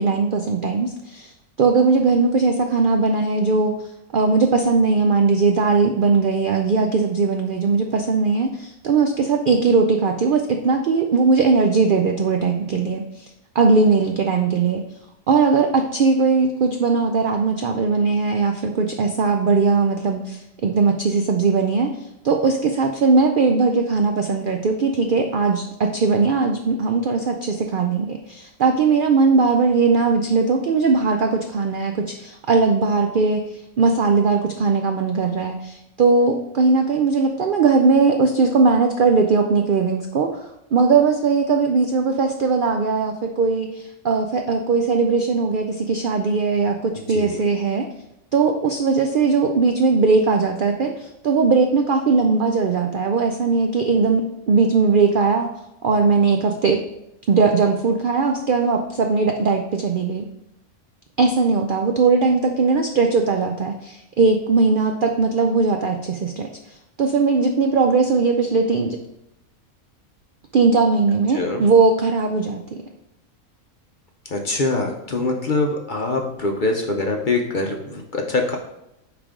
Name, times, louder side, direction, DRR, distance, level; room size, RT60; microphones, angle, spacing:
voice 1, 0.0-1.3 1.6-13.3 13.5-14.8 15.3-21.9 22.2-40.3 40.7-47.9 48.3-55.5 55.8-56.8 57.3-60.3 61.2-69.0 70.5-72.8, right 4 dB, 70° right, 4 dB, 0.5 m, -19 dB
voice 2, 74.3-78.6, left 2 dB, 50° left, 2 dB, 0.6 m, -23 dB
9.7 x 3.4 x 3.7 m, 0.85 s
omnidirectional pair, 1.5 m